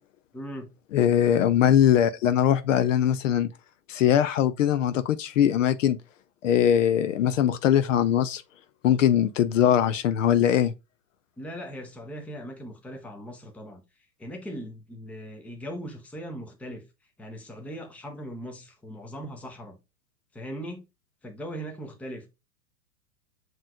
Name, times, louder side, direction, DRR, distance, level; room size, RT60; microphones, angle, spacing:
voice 1, 0.3-0.7 11.4-13.8 14.2-16.9 17.2-19.8 20.3-20.8 21.2-22.3, equal, 5° left, 0.6 m, -39 dB
voice 2, 0.9-3.5 3.9-6.0 6.4-8.4 8.8-10.7, left 10 dB, 50° left, 0.5 m, -21 dB
7.3 x 3.1 x 2.3 m
figure-of-eight pair, 105°, 49 cm